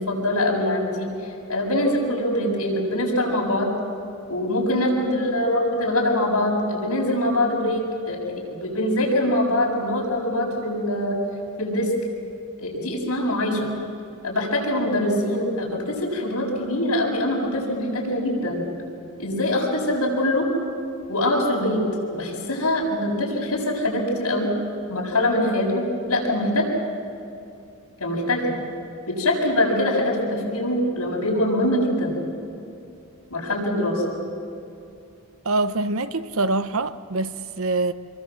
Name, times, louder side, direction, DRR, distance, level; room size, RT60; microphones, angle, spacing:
voice 1, 0.0-3.7 4.3-11.2 11.6-11.9 12.6-13.7 14.2-18.6 19.2-20.5 21.1-24.5 24.9-26.7 28.0-28.5 29.1-32.2 33.3-34.0, left 1 dB, 85° left, 7.6 m, -23 dB
voice 2, 35.4-37.9, right 2 dB, 65° right, 0.9 m, -24 dB
27.5 x 23.5 x 7.8 m
head